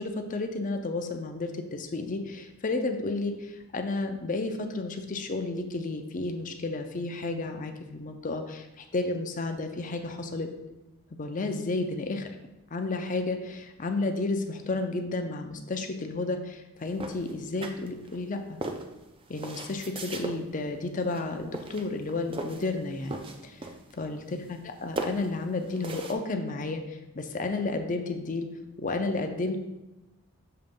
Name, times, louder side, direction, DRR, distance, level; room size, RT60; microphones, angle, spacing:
voice 1, 0.0-10.5 11.1-12.4 12.7-18.6 19.3-23.6 23.9-28.5 28.8-29.6, left 3 dB, 35° left, 6 dB, 0.5 m, -32 dB
sound 1, 17.0-18.2 18.6-20.4 21.0-21.3 21.5-22.7 23.0-24.0 24.3-24.7 25.0-26.1, right 2 dB, 25° right, 0.4 m, -37 dB
6.8 x 3.0 x 5.2 m, 0.98 s
head